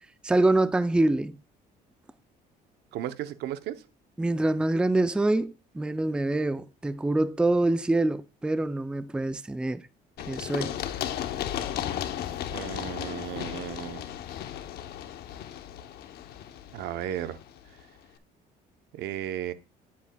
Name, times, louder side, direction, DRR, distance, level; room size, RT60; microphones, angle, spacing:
voice 1, 0.2-1.4 4.2-9.9 10.3-10.8, right 2 dB, 5° right, 0.4 m, -25 dB
voice 2, 2.9-3.8 12.5-14.0 16.7-17.4 18.9-19.5, right 11 dB, 80° right, 0.7 m, -34 dB
Run, 10.2-17.8, left 10 dB, 70° left, 0.8 m, -35 dB
9.3 x 8.3 x 2.2 m
cardioid pair, 110°, 17 cm